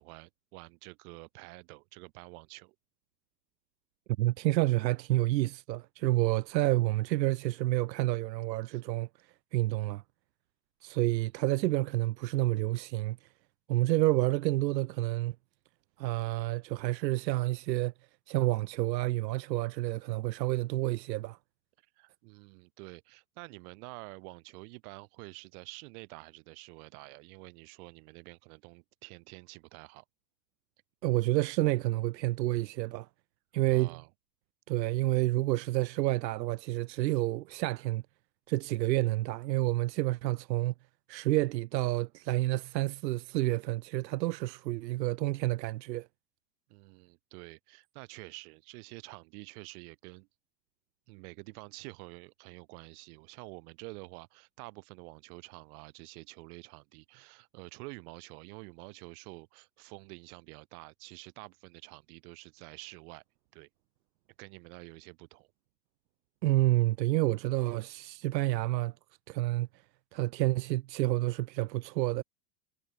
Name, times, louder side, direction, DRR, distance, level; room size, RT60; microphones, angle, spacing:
voice 1, 0.0-2.8 8.7-8.8 22.0-30.0 33.7-34.1 46.7-50.3 51.1-63.2 63.5-63.7 64.4-65.5, right 28 dB, 60° right, 3.8 m, -48 dB
voice 2, 4.2-10.0 10.8-13.3 13.7-15.3 16.0-17.9 18.3-21.4 31.0-33.1 33.5-34.0 34.7-38.0 38.5-40.7 41.1-46.1 66.4-68.9 69.3-69.7 70.1-72.2, right 17 dB, 90° right, 1.2 m, -29 dB
supercardioid pair, 140°, 49 cm